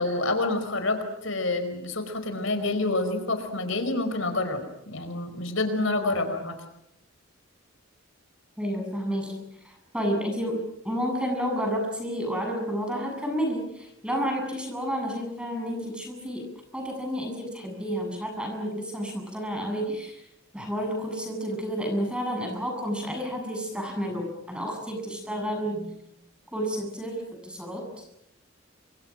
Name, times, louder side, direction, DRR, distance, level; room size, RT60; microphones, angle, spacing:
voice 1, 0.0-4.6 4.9-6.5, left 2 dB, 70° left, 8 dB, 4.8 m, -27 dB
voice 2, 8.6-16.4 16.7-20.2 20.5-25.9 26.5-28.1, equal, 5° right, 3 dB, 7.8 m, -31 dB
30.0 x 26.5 x 6.2 m, 0.79 s
head